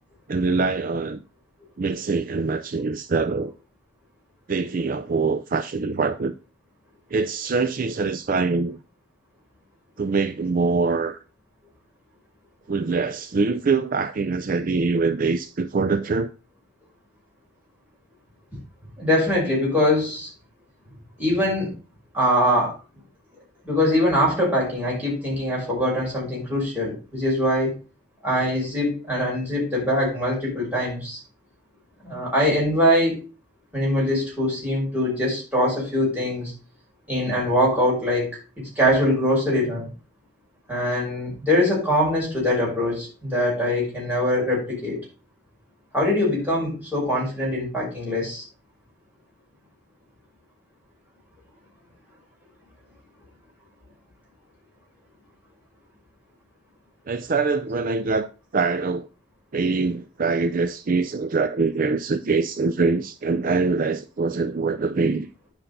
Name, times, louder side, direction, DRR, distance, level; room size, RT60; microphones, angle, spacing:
voice 1, 0.3-1.2 1.8-3.5 4.5-6.3 7.1-8.8 10.0-11.2 12.7-16.3 57.1-58.3 58.5-59.1 59.5-65.3, right 4 dB, 50° right, 0.5 m, -24 dB
voice 2, 19.0-20.3 21.2-21.7 22.1-22.8 23.6-27.8 28.2-31.2 32.0-33.2 33.7-36.5 37.1-39.9 40.7-45.0 45.9-48.4, left 1 dB, 10° right, 5.8 m, -23 dB
10.0 x 5.6 x 5.4 m
head